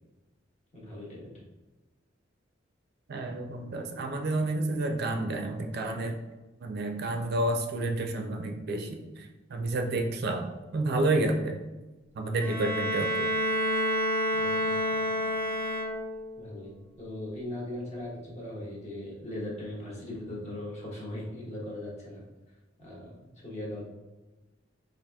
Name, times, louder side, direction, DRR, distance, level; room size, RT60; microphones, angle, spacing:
voice 1, 0.7-1.4 14.3-15.0 16.4-22.2 22.8-23.8, left 1 dB, 40° left, -5 dB, 1.0 m, -39 dB
voice 2, 3.1-6.2 6.6-10.5 10.7-11.5 12.1-13.3, right 2 dB, 55° right, 4 dB, 0.4 m, -30 dB
Bowed string instrument, 12.4-16.4, equal, 10° left, 0.4 m, -29 dB
4.1 x 2.6 x 2.2 m, 1.1 s
head